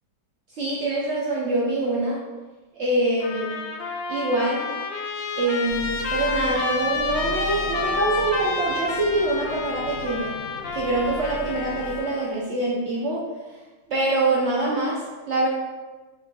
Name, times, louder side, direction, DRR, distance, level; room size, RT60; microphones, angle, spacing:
voice 1, 0.5-2.2 2.7-3.6 4.1-4.7 5.4-10.3 10.7-13.3 13.9-15.0 15.3-15.5, right 2 dB, 75° right, -5 dB, 0.6 m, -24 dB
Trumpet, 3.2-12.3, left 3 dB, 85° left, 0.8 m, -30 dB
sound 1, 5.7-12.0, right 1 dB, 35° left, 0.9 m, -38 dB
3.7 x 3.5 x 3.5 m, 1.2 s
omnidirectional pair, 2.2 m